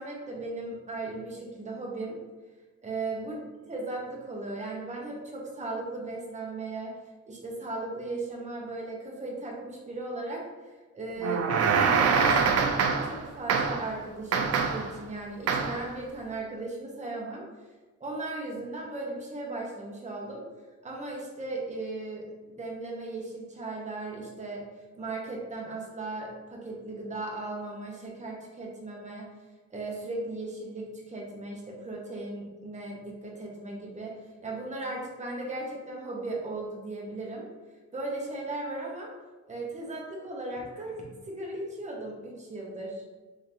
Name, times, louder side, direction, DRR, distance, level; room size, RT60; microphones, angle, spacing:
voice 1, 0.0-2.2 2.8-7.0 7.2-10.5 10.9-11.5 11.8-12.7 13.0-17.4 18.0-20.4 20.8-24.7 25.0-29.3 29.7-37.5 37.9-39.1 39.5-43.0, right 2 dB, 25° right, -2 dB, 1.1 m, -37 dB
sound 1, 11.2-13.2 13.5-13.9 14.3-14.9 15.5-15.9, right 5 dB, 55° right, 0.5 m, -24 dB
3.6 x 3.5 x 3.1 m, 1.3 s
cardioid pair, 90°, 30 cm